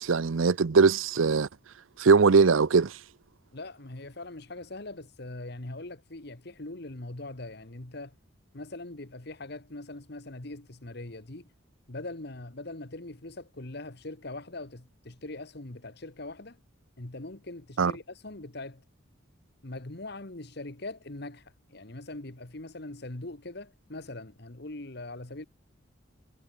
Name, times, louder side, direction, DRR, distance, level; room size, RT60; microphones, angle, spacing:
voice 1, 0.0-1.5 2.0-2.9 17.8-17.9, right 5 dB, 80° right, 0.6 m, -21 dB
voice 2, 3.5-8.2 8.5-11.5 11.9-16.6 17.0-18.8 19.6-25.4, left 2 dB, 55° left, 1.6 m, -41 dB
head